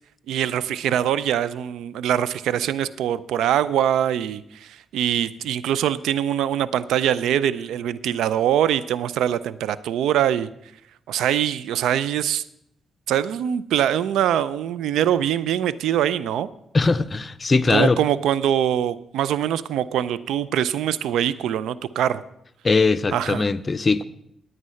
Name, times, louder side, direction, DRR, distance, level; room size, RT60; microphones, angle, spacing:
voice 1, 0.3-10.5 11.1-12.4 13.1-16.5 17.7-22.2 23.1-23.5, right 10 dB, 85° right, 18 dB, 0.4 m, -23 dB
voice 2, 16.7-18.0 22.6-24.0, left 3 dB, 40° left, 12 dB, 0.6 m, -20 dB
9.7 x 9.1 x 5.6 m, 0.76 s
supercardioid pair, 55°, 0 cm